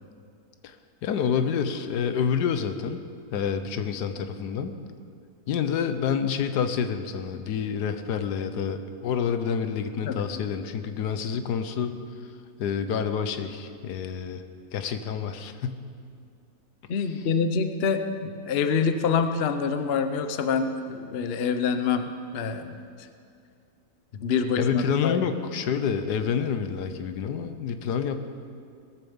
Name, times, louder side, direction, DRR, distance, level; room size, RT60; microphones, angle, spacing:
voice 1, 1.0-3.0 3.3-4.7 5.5-11.9 12.6-14.4 14.7-15.9 24.6-28.2, left 7 dB, 75° left, 9 dB, 1.3 m, -28 dB
voice 2, 16.9-22.8 24.1-25.2, left 5 dB, 55° left, 8 dB, 0.7 m, -26 dB
19.0 x 6.9 x 7.1 m, 2.4 s
omnidirectional pair, 1.8 m